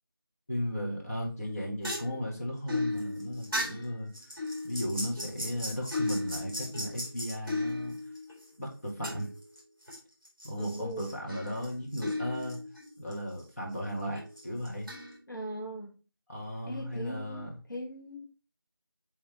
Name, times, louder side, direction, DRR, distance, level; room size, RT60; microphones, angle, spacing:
voice 1, 0.5-4.1 4.6-8.0 8.6-9.3 10.4-12.6 13.0-14.9 16.3-17.6, equal, 40° left, -3 dB, 1.9 m, -35 dB
sound 1, 1.4-8.4 9.0-10.0 10.2-13.1 13.4-13.5 14.2-15.2, left 2 dB, 10° right, 3.4 m, -36 dB
voice 2, 10.6-11.1 15.3-16.0 16.7-18.3, right 1 dB, 60° left, -1 dB, 1.2 m, -40 dB
8.2 x 3.5 x 3.3 m, 0.33 s
figure-of-eight pair, 175°, 12 cm